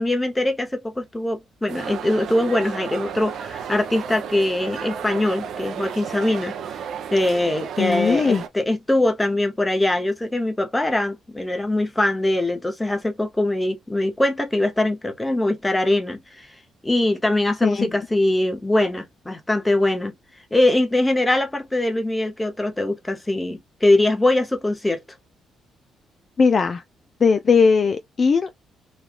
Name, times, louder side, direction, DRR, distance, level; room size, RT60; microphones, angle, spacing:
voice 1, 0.0-6.5 7.1-16.5 16.8-20.1 20.5-25.0, left 1 dB, 10° left, 0.9 m, -22 dB
sound 1, 1.7-8.5, right 7 dB, 70° right, 0.6 m, -33 dB
voice 2, 7.8-8.4 17.6-17.9 26.4-26.8 27.2-28.6, left 5 dB, 40° left, 0.3 m, -19 dB
3.1 x 2.4 x 2.4 m
cardioid pair, 90°, 0 cm